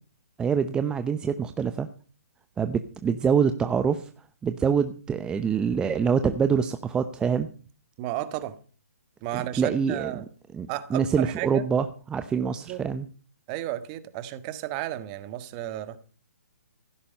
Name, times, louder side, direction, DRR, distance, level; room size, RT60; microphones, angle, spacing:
voice 1, 0.4-1.9 2.6-4.1 4.4-7.5 9.3-10.2 10.5-13.1, right 6 dB, 10° right, 0.7 m, -25 dB
voice 2, 8.0-8.5 9.2-10.3 10.7-11.6 12.4-12.8 13.5-16.0, right 14 dB, 30° right, 1.6 m, -33 dB
16.0 x 12.5 x 5.4 m
hypercardioid pair, 145°, 8 cm